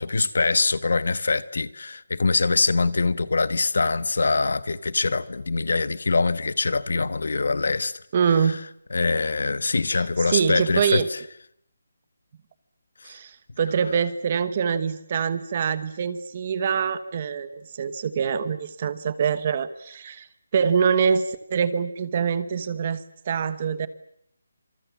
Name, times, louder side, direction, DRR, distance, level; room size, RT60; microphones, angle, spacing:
voice 1, 0.0-8.0 8.9-11.0, left 3 dB, 60° left, 1.3 m, -23 dB
voice 2, 8.1-8.6 9.9-11.1 13.0-20.3 20.5-23.9, right 6 dB, 25° right, 1.1 m, -25 dB
27.0 x 26.5 x 7.3 m
hypercardioid pair, 180°, 0 cm